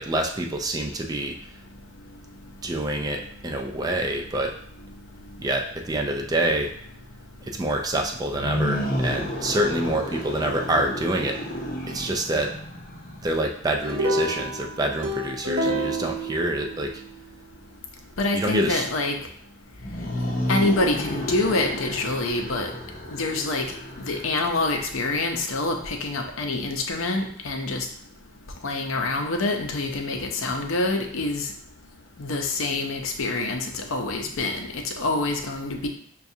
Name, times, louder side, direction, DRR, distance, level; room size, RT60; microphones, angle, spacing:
voice 1, 0.0-1.4 2.6-4.5 5.4-6.7 7.4-11.4 11.9-12.5 13.2-16.9 18.3-18.9, right 1 dB, 20° right, 2 dB, 0.3 m, -26 dB
sound 1, 8.3-13.5 19.7-25.4, equal, 40° left, 0.6 m, -32 dB
sound 2, 13.8-17.2, right 1 dB, 70° right, 0.7 m, -29 dB
voice 2, 18.2-19.2 20.5-22.7 23.1-23.7 24.0-27.9 28.6-31.5 32.2-35.9, left 2 dB, 80° left, 3 dB, 0.6 m, -26 dB
5.8 x 2.3 x 2.7 m, 0.63 s
head